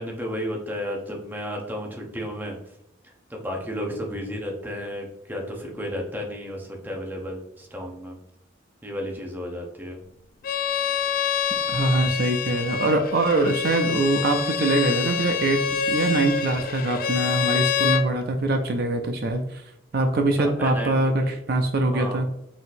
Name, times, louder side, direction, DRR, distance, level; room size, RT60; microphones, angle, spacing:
voice 1, 0.0-2.6 3.3-8.2 8.8-10.0 20.4-21.3 21.9-22.2, equal, 10° right, 0 dB, 0.8 m, -33 dB
Bowed string instrument, 10.4-18.1, left 7 dB, 50° left, 0.4 m, -26 dB
voice 2, 11.7-15.6 15.9-19.6 19.9-22.3, right 2 dB, 55° right, 5 dB, 0.5 m, -23 dB
4.1 x 3.9 x 2.6 m, 0.82 s
head